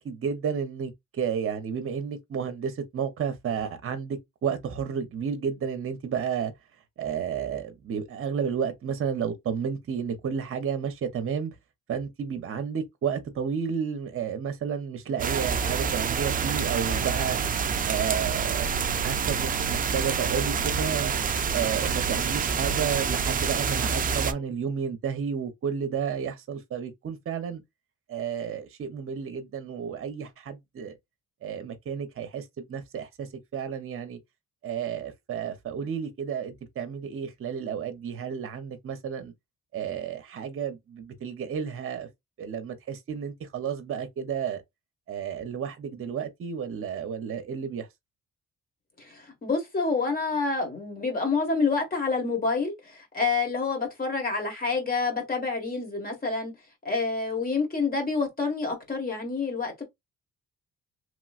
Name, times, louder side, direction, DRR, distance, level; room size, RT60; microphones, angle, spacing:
voice 1, 0.0-6.5 7.0-11.5 11.9-17.4 17.8-21.1 21.5-27.6 28.1-30.9 31.4-34.2 34.6-39.3 39.7-42.1 42.4-44.6 45.1-47.9, right 7 dB, 45° right, 0.8 m, -32 dB
sound 1, 15.2-24.3, right 6 dB, 30° right, 0.4 m, -27 dB
voice 2, 49.0-56.5 56.8-59.8, left 4 dB, 30° left, 1.5 m, -28 dB
3.1 x 2.9 x 2.4 m
cardioid pair, 90°, 30 cm